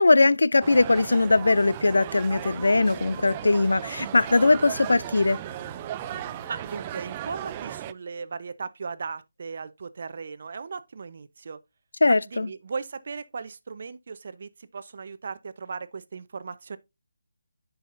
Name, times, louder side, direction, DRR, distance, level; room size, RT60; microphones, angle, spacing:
voice 1, 0.0-5.4 12.0-12.5, left 3 dB, 80° left, 0.4 m, -20 dB
sound 1, 0.6-7.9, right 12 dB, 20° right, 0.3 m, -36 dB
sound 2, 2.3-7.6, equal, ahead, 2.8 m, -48 dB
voice 2, 6.5-11.6 12.2-16.8, right 5 dB, 50° right, 0.7 m, -37 dB
9.9 x 5.5 x 2.5 m
figure-of-eight pair, 165°, 0 cm